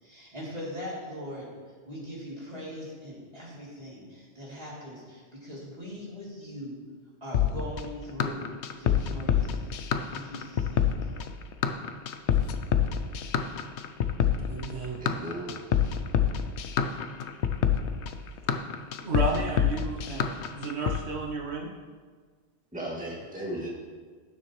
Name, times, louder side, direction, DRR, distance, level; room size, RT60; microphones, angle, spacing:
voice 1, 0.0-1.5 1.9-6.8 7.2-8.5 8.8-9.7 10.1-11.3, equal, 35° right, -7 dB, 3.3 m, -41 dB
sound 1, 7.3-21.0, left 8 dB, 80° left, 0.9 m, -26 dB
voice 2, 14.5-15.0 19.0-21.7, right 3 dB, 75° right, 0 dB, 1.3 m, -32 dB
voice 3, 15.0-15.5 22.7-23.7, right 1 dB, 5° right, -5 dB, 2.0 m, -35 dB
16.0 x 7.2 x 3.2 m, 1.5 s
omnidirectional pair, 1.1 m